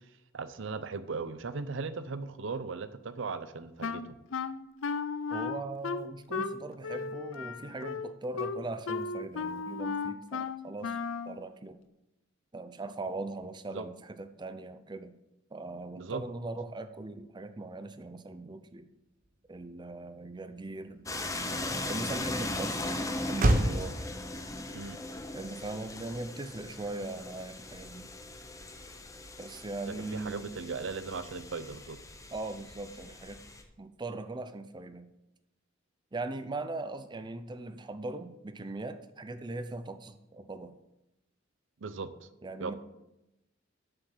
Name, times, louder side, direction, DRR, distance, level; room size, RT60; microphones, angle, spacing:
voice 1, 0.3-4.2 13.7-13.8 16.0-16.2 24.7-25.0 29.9-32.0 41.8-42.3 42.6-42.7, right 4 dB, 70° right, 13 dB, 0.6 m, -38 dB
Wind instrument woodwind instrument, 3.8-11.4, left 5 dB, 85° left, 0.5 m, -35 dB
voice 2, 5.3-11.0 11.3-11.8 12.5-15.1 15.5-18.9 19.5-22.9 23.3-24.0 25.3-28.1 29.4-30.5 32.3-33.4 33.8-35.1 36.1-40.7 42.4-42.7, right 2 dB, 25° right, 9 dB, 0.5 m, -40 dB
Motor vehicle (road), 19.2-27.9, right 1 dB, 45° right, 1.0 m, -35 dB
sound 1, 21.1-33.6, left 2 dB, 15° left, 0.9 m, -39 dB
7.3 x 6.9 x 7.2 m, 0.93 s
head